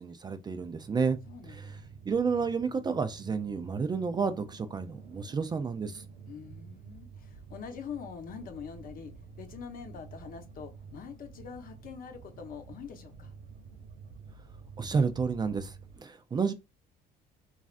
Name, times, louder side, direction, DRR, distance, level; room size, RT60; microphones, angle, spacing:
voice 1, 0.0-1.2 1.5-1.8 2.1-6.0 14.8-16.5, right 5 dB, 25° right, 0.4 m, -30 dB
sound 1, 0.6-16.0, right 5 dB, 65° right, 0.8 m, -50 dB
voice 2, 1.3-1.9 6.3-13.3, left 7 dB, 55° left, 0.8 m, -44 dB
3.1 x 2.4 x 2.4 m
cardioid pair, 110°, 17 cm